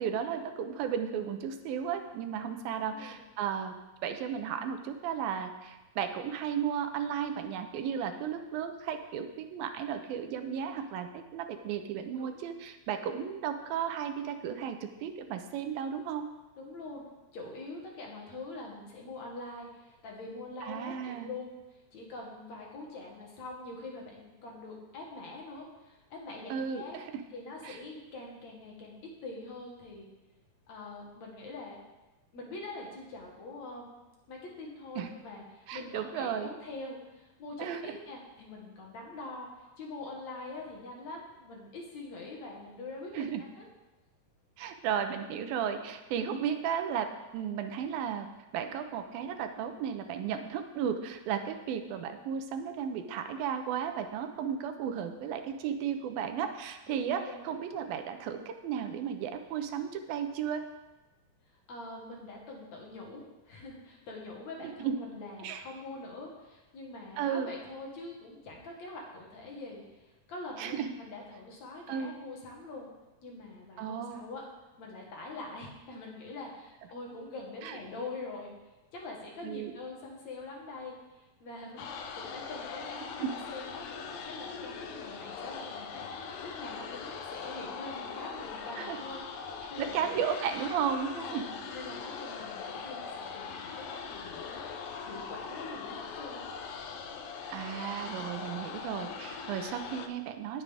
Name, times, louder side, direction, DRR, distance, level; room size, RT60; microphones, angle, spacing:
voice 1, 0.0-3.8 4.0-16.3 20.6-21.4 26.5-27.1 27.6-27.8 35.0-35.1 35.7-36.5 37.6-38.0 43.1-43.4 44.6-48.3 48.5-60.6 64.6-65.0 65.4-65.6 67.2-67.5 70.6-70.9 71.9-72.1 73.8-74.2 77.6-77.8 79.4-79.7 83.2-83.3 88.8-89.0 89.8-91.5 97.5-100.6, right 8 dB, 80° right, 7 dB, 2.5 m, -34 dB
voice 2, 2.9-3.2 12.2-12.3 16.6-17.0 17.3-27.0 27.3-30.1 30.7-31.8 32.3-33.9 34.3-43.2 43.6-43.7 56.9-57.5 61.7-72.9 73.2-74.4 74.8-78.5 78.9-81.8 82.1-83.8 84.1-90.1 91.0-94.7 95.0-96.5, left 2 dB, 55° left, -1 dB, 2.6 m, -44 dB
sound 1, 81.8-100.1, left 5 dB, 80° left, 2.5 m, -41 dB
19.0 x 7.3 x 3.5 m, 1.1 s
omnidirectional pair, 4.2 m